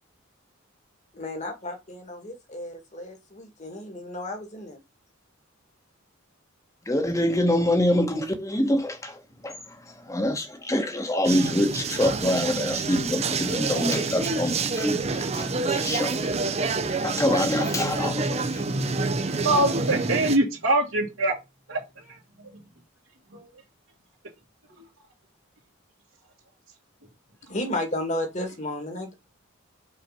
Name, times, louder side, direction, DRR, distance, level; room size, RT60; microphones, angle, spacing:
voice 1, 1.1-4.8 27.5-29.1, left 1 dB, 35° left, 2.0 m, -33 dB
voice 2, 6.8-16.3 17.0-18.4, left 1 dB, 15° left, 1.3 m, -26 dB
sound 1, 11.2-20.4, right 3 dB, 30° right, 0.7 m, -27 dB
voice 3, 19.2-21.3 21.7-22.2 23.3-23.5, right 2 dB, 80° right, 2.1 m, -24 dB
5.8 x 4.4 x 5.7 m
head